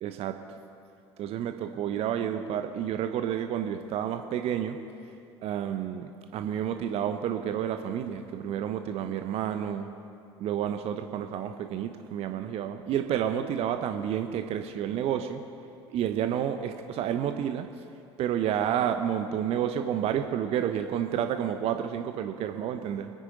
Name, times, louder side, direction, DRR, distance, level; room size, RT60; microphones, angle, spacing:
voice 1, 0.0-0.3 1.2-4.8 5.4-9.9 10.4-15.4 15.9-17.7 18.2-23.1, right 9 dB, 45° right, 7 dB, 0.9 m, -30 dB
26.5 x 10.5 x 3.9 m, 2.6 s
figure-of-eight pair, 60°, 14 cm